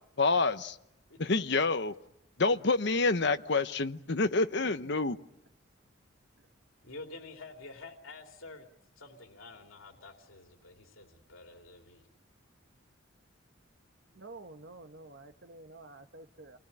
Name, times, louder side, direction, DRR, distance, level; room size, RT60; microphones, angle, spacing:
voice 1, 0.2-0.8 1.2-1.9 2.4-5.2, left 3 dB, 55° left, 11 dB, 1.0 m, -27 dB
voice 2, 6.8-8.7 9.0-12.1, left 3 dB, 90° left, 3 dB, 3.0 m, -49 dB
voice 3, 14.1-16.6, right 2 dB, 55° right, 8 dB, 1.3 m, -49 dB
28.0 x 20.5 x 8.8 m, 0.84 s
head